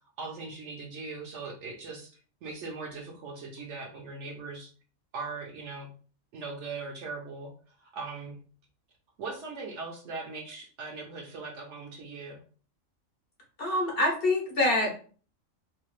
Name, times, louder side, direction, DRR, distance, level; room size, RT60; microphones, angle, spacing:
voice 1, 0.0-2.1 2.4-4.7 5.1-5.9 6.3-8.4 9.2-12.4, right 4 dB, 70° right, 0 dB, 0.9 m, -40 dB
voice 2, 13.6-15.0, left 1 dB, 60° left, 0 dB, 0.7 m, -25 dB
2.7 x 2.2 x 2.9 m, 0.41 s
omnidirectional pair, 1.4 m